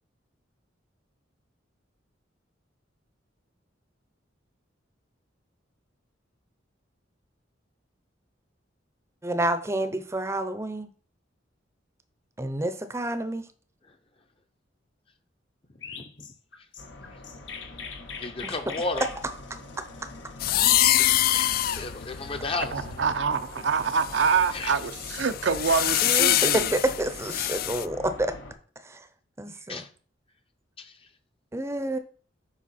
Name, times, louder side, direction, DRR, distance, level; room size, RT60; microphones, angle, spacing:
voice 1, 9.2-10.9 12.4-13.4 18.4-18.5 26.0-28.3 28.9-29.0 29.4-29.8 31.5-32.0, right 1 dB, 15° right, 0.7 m, -29 dB
voice 2, 15.7-16.3 16.6-16.7 17.1-17.2 17.5-17.7 18.2-19.1 21.3-21.5 21.8-22.8 23.6-23.7 24.5-24.8 29.5-29.9 30.8-31.1, left 3 dB, 30° left, 0.8 m, -34 dB
Chirp tweet, 15.8-20.9, left 6 dB, 65° left, 1.0 m, -42 dB
sound 1, 16.8-28.5, left 2 dB, 85° left, 1.4 m, -44 dB
sound 2, 20.4-23.3 23.9-27.8, left 13 dB, 50° left, 0.3 m, -25 dB
voice 3, 22.7-26.7, right 5 dB, 70° right, 0.6 m, -26 dB
7.4 x 5.1 x 4.2 m
head